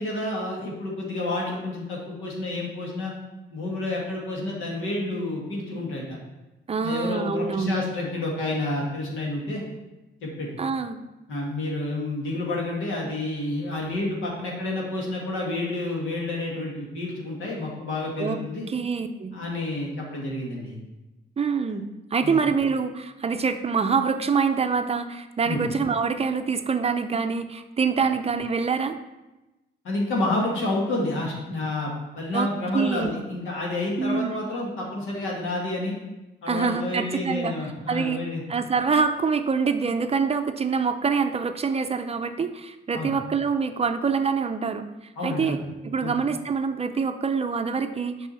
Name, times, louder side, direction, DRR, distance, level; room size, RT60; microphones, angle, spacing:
voice 1, 0.0-3.1 3.5-6.2 6.8-9.6 10.2-10.5 11.3-18.7 19.3-20.8 22.2-22.4 25.5-25.6 29.8-36.0 36.4-38.4 42.9-43.1 45.2-45.6 46.0-46.1, left 2 dB, 80° left, -2 dB, 2.2 m, -29 dB
voice 2, 6.7-7.8 10.6-11.0 18.2-18.4 18.7-19.4 21.4-29.0 32.3-33.1 34.0-34.3 36.5-37.5 37.9-38.2 38.5-45.6 45.8-48.3, right 5 dB, 30° right, 8 dB, 0.5 m, -25 dB
7.2 x 5.5 x 4.3 m, 1.0 s
cardioid pair, 90°, 20 cm